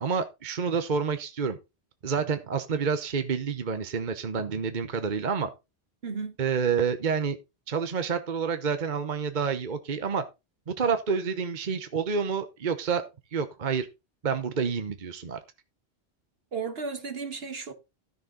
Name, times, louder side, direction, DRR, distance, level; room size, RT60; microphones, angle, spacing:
voice 1, 0.0-1.6 2.0-5.5 6.4-7.4 7.7-10.2 10.7-13.0 13.3-13.9 14.2-15.4, right 6 dB, 45° right, 1.0 m, -28 dB
voice 2, 6.0-6.4 16.5-17.7, right 5 dB, 65° right, 1.7 m, -34 dB
13.0 x 6.8 x 3.9 m
omnidirectional pair, 1.1 m